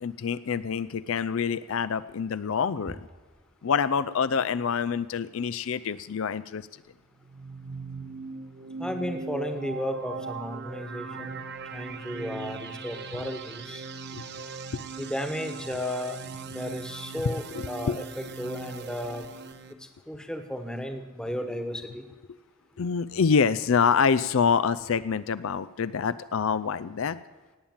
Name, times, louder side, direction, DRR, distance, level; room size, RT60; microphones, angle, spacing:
voice 1, 0.0-3.1 3.6-6.7 14.1-14.2 14.7-14.8 17.2-17.3 17.9-18.0 22.8-27.2, left 6 dB, 65° left, 15 dB, 0.4 m, -26 dB
sound 1, 7.2-19.7, right 4 dB, 50° right, 0.9 m, -39 dB
voice 2, 8.8-11.4 11.7-13.9 15.0-16.2 16.5-19.3 20.1-22.0, left 1 dB, 5° left, 7 dB, 1.2 m, -34 dB
18.0 x 8.7 x 7.2 m, 1.3 s
head